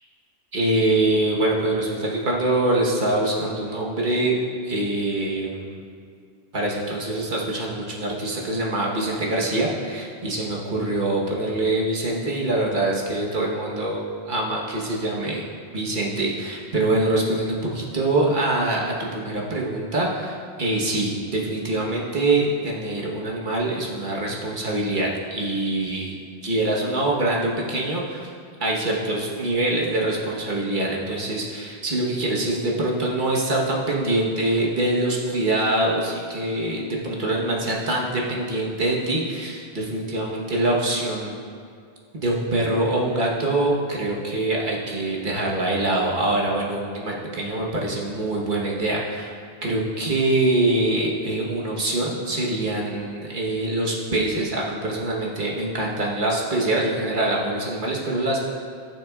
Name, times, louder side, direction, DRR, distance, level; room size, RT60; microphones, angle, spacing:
voice 1, 0.5-4.4 4.6-5.8 6.5-15.5 15.7-28.3 28.6-41.3 42.1-49.3 49.6-58.4, right 2 dB, 50° right, -3 dB, 1.3 m, -24 dB
15.0 x 6.3 x 2.4 m, 2.3 s
omnidirectional pair, 1.1 m